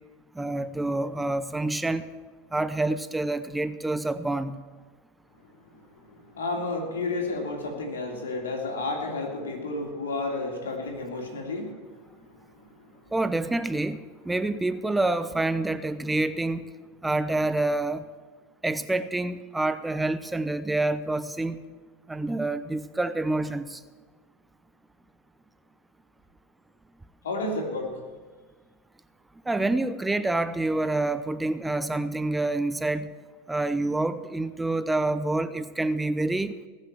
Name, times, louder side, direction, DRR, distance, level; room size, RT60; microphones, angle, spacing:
voice 1, 0.3-2.1 2.5-4.6 13.1-16.7 17.0-18.0 18.6-21.6 22.1-23.8 29.5-33.1 33.5-36.5, right 2 dB, 10° right, 12 dB, 0.7 m, -27 dB
voice 2, 5.6-12.2 12.9-13.0 27.2-27.9, left 2 dB, 90° left, 1 dB, 3.2 m, -32 dB
19.5 x 6.5 x 7.7 m, 1.4 s
hypercardioid pair, 100°, 0 cm